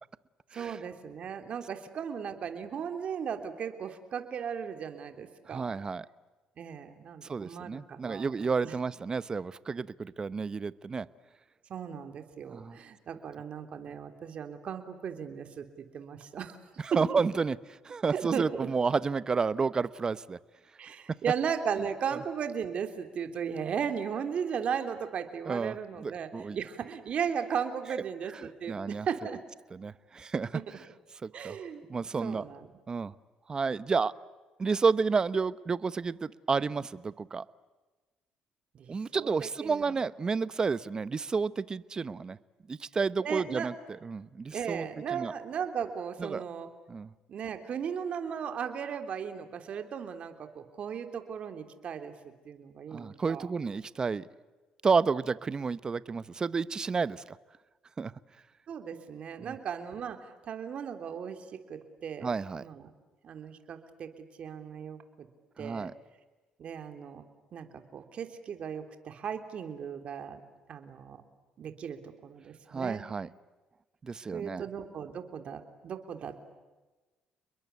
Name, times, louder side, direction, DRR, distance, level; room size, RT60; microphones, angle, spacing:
voice 1, 0.5-5.8 6.6-8.3 8.6-8.7 11.7-16.6 16.9-17.2 18.1-18.7 20.8-29.4 31.3-31.8 32.2-32.8 38.7-39.9 43.2-43.7 44.5-46.7 47.3-52.1 52.4-53.5 58.7-62.3 62.6-62.9 63.2-64.1 64.4-65.3 65.6-65.9 66.6-67.2 67.5-70.4 70.7-71.2 71.6-73.1 74.3-76.3, right 7 dB, 55° right, 7 dB, 3.4 m, -36 dB
voice 2, 5.5-6.1 7.2-11.1 12.5-12.8 16.8-17.6 17.8-20.4 25.5-26.6 28.7-29.1 29.7-30.6 31.2-31.6 31.9-32.4 32.9-33.1 33.5-34.1 34.6-37.4 38.9-42.4 42.7-43.7 44.0-45.3 46.2-46.4 46.9-47.1 52.9-54.3 54.8-57.4 58.0-58.1 59.4-59.5 62.2-62.6 65.6-65.9 72.7-73.3 74.0-74.6, right 5 dB, 30° right, 17 dB, 0.9 m, -31 dB
29.5 x 22.0 x 8.4 m, 1.2 s
cardioid pair, 95°, 2 cm